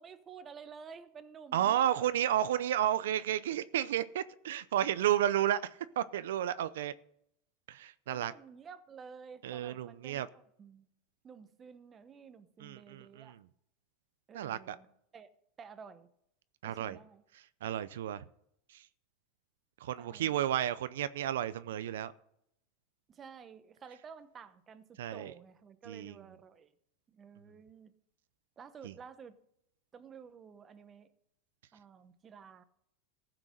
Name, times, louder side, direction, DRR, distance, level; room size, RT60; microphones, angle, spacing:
voice 1, 0.0-2.2 8.1-10.9 11.2-13.4 14.3-15.3 15.6-16.1 16.6-17.2 20.0-20.4 23.1-26.7 27.1-27.9 28.6-29.4 29.9-31.1 31.7-32.6, right 6 dB, 25° right, 0.9 m, -52 dB
voice 2, 1.5-6.9 7.7-8.3 9.4-10.3 12.6-13.4 14.3-14.8 16.6-17.0 17.6-18.2 18.7-18.8 19.8-22.1 25.0-25.3 25.9-26.2 28.8-28.9, right 11 dB, 85° right, 0.5 m, -32 dB
14.5 x 6.1 x 6.5 m
supercardioid pair, 140°, 0 cm